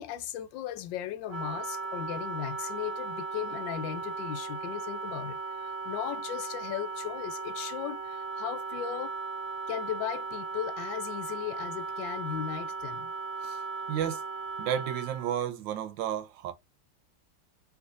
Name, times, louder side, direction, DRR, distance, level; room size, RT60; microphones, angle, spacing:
voice 1, 0.0-9.1 9.7-13.1, left 11 dB, 85° left, 1.3 m, -37 dB
Wind instrument woodwind instrument, 1.3-15.4, right 4 dB, 10° right, 1.8 m, -37 dB
voice 2, 13.9-14.2 14.6-16.5, right 10 dB, 80° right, 1.3 m, -32 dB
3.5 x 3.1 x 2.4 m
omnidirectional pair, 2.0 m